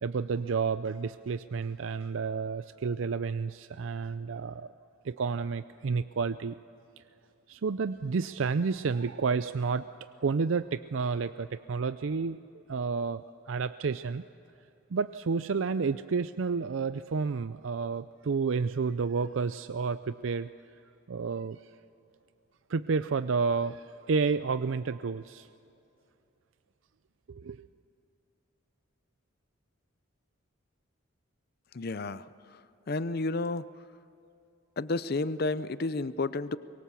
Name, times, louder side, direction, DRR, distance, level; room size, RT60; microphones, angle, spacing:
voice 1, 0.0-4.7 5.0-6.5 7.0-7.1 7.5-9.9 10.2-14.2 14.9-20.5 21.1-21.6 22.7-25.5 27.3-27.6, right 5 dB, 70° right, 12 dB, 0.5 m, -30 dB
voice 2, 31.7-33.6 34.8-36.6, left 3 dB, 50° left, 15 dB, 0.6 m, -32 dB
24.0 x 23.0 x 7.0 m, 2.8 s
head